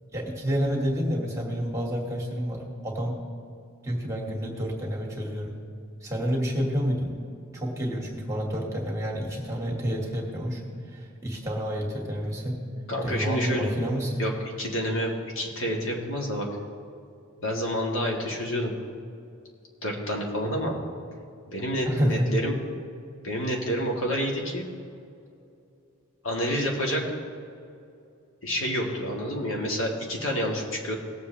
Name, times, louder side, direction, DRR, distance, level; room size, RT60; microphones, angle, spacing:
voice 1, 0.1-3.2 3.8-5.6 6.0-7.1 7.5-10.6 10.9-12.6 13.0-14.2 21.9-22.3, equal, 15° right, -2 dB, 2.0 m, -29 dB
voice 2, 12.9-13.7 14.2-14.3 14.6-16.5 17.4-18.7 19.8-20.7 21.5-22.6 23.2-24.7 26.2-27.0 28.4-31.0, equal, 65° left, -1 dB, 2.0 m, -28 dB
18.5 x 7.7 x 3.4 m, 2.5 s
head